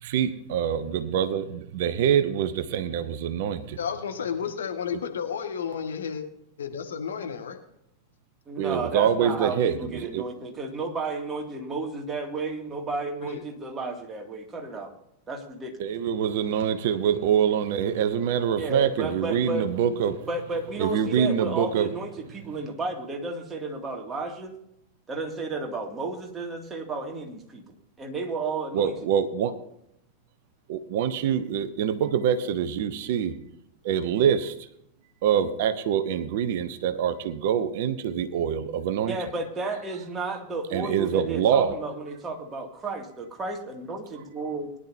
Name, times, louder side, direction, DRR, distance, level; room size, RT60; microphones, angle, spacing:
voice 1, 0.0-3.8 4.9-5.0 8.6-10.3 15.8-20.3 20.8-21.9 28.7-29.6 30.7-33.3 33.8-34.7 35.2-39.1 40.7-41.8, right 8 dB, 50° right, 0.9 m, -25 dB
voice 2, 3.8-6.2 6.6-7.6 13.2-13.4, left 7 dB, 65° left, 1.7 m, -32 dB
voice 3, 8.5-14.9 15.3-15.9 18.6-19.7 20.2-24.5 25.1-27.6 28.0-28.9 39.1-44.8, right 3 dB, 20° right, 2.4 m, -32 dB
20.5 x 11.0 x 2.8 m
figure-of-eight pair, 90°, 0 cm